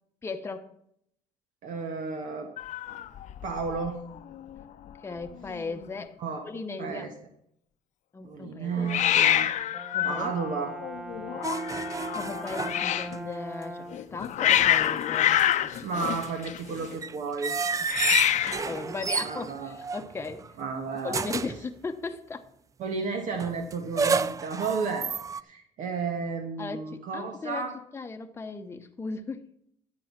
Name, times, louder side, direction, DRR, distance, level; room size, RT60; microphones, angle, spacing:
voice 1, 0.2-0.7 5.0-6.2 6.4-7.1 8.1-8.9 9.9-10.3 12.1-16.1 17.7-18.2 18.6-20.5 21.0-22.5 26.6-27.7 27.9-29.4, left 4 dB, 20° left, 0.9 m, -37 dB
voice 2, 1.6-2.5 3.4-4.0 6.2-6.4 6.8-7.1 8.2-9.5 10.0-10.7 15.8-17.5 19.2-19.8 20.6-21.2 22.8-25.1 25.4-27.7, right 5 dB, 70° right, 1.5 m, -32 dB
Hiss, 2.6-3.9 4.2-4.6 4.9-5.0 5.2-5.9 8.9-13.2 13.9-16.9 17.8-18.7, left 11 dB, 60° left, 0.7 m, -27 dB
Brass instrument, 9.7-14.1, right 1 dB, 5° right, 1.0 m, -40 dB
sound 1, 11.4-13.3 13.6-13.7 15.1-20.5 21.1-21.7 23.4-25.4, right 5 dB, 25° right, 0.3 m, -31 dB
11.0 x 7.7 x 5.9 m
cardioid pair, 125°, 14 cm